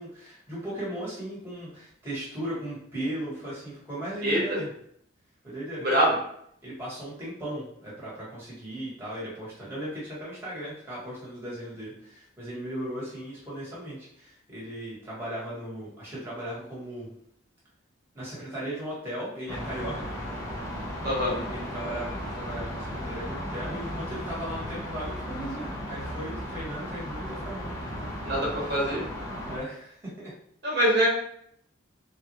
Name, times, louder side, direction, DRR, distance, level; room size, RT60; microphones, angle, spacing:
voice 1, 0.0-4.7 5.4-6.2 6.6-17.1 18.1-20.3 21.1-27.7 29.4-30.3, right 1 dB, 10° right, -8 dB, 1.2 m, -37 dB
voice 2, 4.2-4.6 5.8-6.1 21.0-21.3 28.2-29.0 30.6-31.1, equal, 50° right, -4 dB, 0.9 m, -24 dB
sound 1, 19.5-29.6, equal, 15° left, 0.6 m, -35 dB
3.3 x 2.4 x 3.0 m, 0.69 s
head